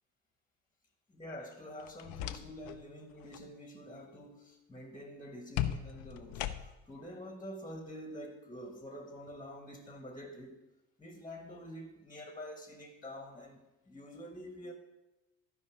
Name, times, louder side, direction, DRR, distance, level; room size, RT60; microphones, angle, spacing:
voice 1, 1.1-10.6 11.0-14.7, equal, 10° left, 1.4 m, -47 dB
sound 1, 1.8-2.8 3.1-3.5 5.6-7.0, left 11 dB, 55° left, 0.7 m, -38 dB
12.5 x 5.3 x 4.7 m
figure-of-eight pair, 55°, 39 cm